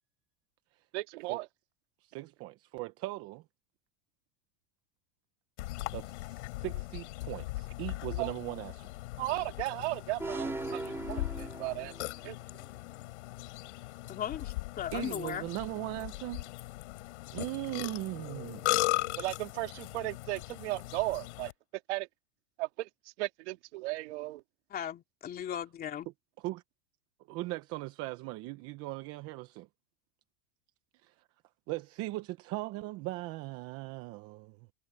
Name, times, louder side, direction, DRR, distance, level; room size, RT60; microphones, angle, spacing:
voice 1, 0.9-1.5 8.2-8.3 9.2-10.8 11.1-11.9 12.2-12.4 19.2-21.5 21.9-22.1 22.6-22.9 23.2-24.4, right 20 dB, 75° right, 2.5 m, -35 dB
voice 2, 2.0-3.4 5.9-8.9 14.9-16.5 17.3-19.2 26.4-26.6 27.3-29.7 31.0-31.1 31.7-34.6, right 19 dB, 40° right, 0.9 m, -39 dB
Burping eructation, 5.6-21.5, left 19 dB, 85° left, 5.6 m, -38 dB
sound 1, 10.2-12.2, right 2 dB, 5° right, 3.6 m, -38 dB
voice 3, 14.1-15.5 24.7-26.1, left 10 dB, 25° left, 3.0 m, -37 dB
supercardioid pair, 160°, 34 cm